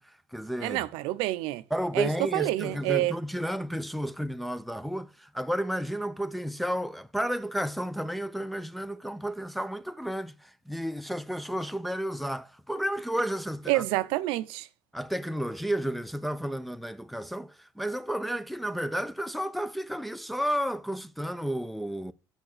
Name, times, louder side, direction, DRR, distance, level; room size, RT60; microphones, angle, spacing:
voice 1, 0.0-0.8 1.7-13.8 14.9-22.1, equal, ahead, 0.7 m, -32 dB
voice 2, 0.6-1.6 1.9-3.1 13.7-14.7, right 18 dB, 80° right, 0.6 m, -28 dB
7.0 x 6.2 x 6.5 m
supercardioid pair, 75°, 9 cm